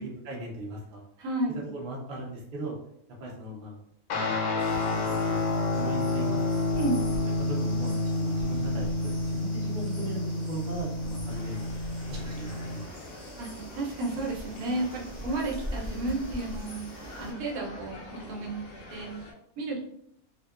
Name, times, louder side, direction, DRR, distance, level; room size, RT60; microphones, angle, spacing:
voice 1, 0.0-1.0 1.5-2.8 3.2-3.8 4.2-5.5 5.7-6.6 7.4-10.2 10.5-11.8 12.1-13.2, right 1 dB, 50° right, -2 dB, 0.7 m, -39 dB
voice 2, 1.2-1.6 6.8-7.0 13.4-16.8 17.2-18.5 18.9-19.1 19.6-19.9, right 2 dB, 80° right, -2 dB, 1.1 m, -32 dB
Guitar, 4.1-12.9, left 2 dB, 85° left, 1.1 m, -29 dB
sound 1, 4.6-17.3, equal, 25° left, 0.7 m, -42 dB
sound 2, 11.3-19.3, left 1 dB, 60° left, 0.6 m, -47 dB
2.7 x 2.2 x 2.3 m, 0.70 s
omnidirectional pair, 1.6 m